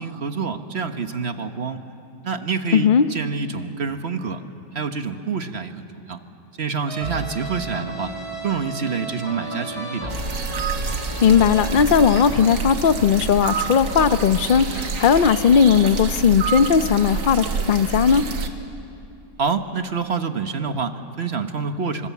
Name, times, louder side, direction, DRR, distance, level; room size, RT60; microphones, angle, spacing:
voice 1, 0.0-1.8 2.2-4.4 4.7-6.2 6.6-8.1 8.4-10.2 19.4-22.1, right 5 dB, 45° right, 8 dB, 1.2 m, -27 dB
voice 2, 2.7-3.1 11.2-18.2, left 7 dB, 55° left, 11 dB, 0.5 m, -17 dB
sound 1, 6.9-12.2, right 1 dB, 20° right, 2.6 m, -33 dB
sound 2, 10.1-18.5, right 5 dB, 80° right, 2.1 m, -28 dB
26.0 x 26.0 x 8.3 m, 2.7 s
omnidirectional pair, 1.8 m